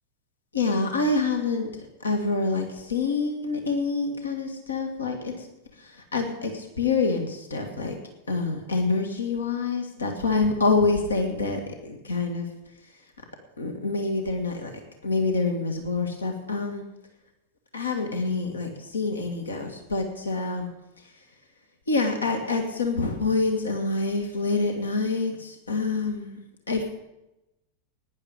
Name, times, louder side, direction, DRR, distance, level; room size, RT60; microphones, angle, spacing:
voice 1, 0.5-1.7 2.0-5.5 5.8-7.9 8.3-12.5 13.6-14.7 15.0-16.8 17.7-20.7 21.9-26.4 26.7-26.9, left 3 dB, 75° left, 4 dB, 1.9 m, -26 dB
17.5 x 10.5 x 5.1 m, 0.94 s
figure-of-eight pair, 90°, 0 cm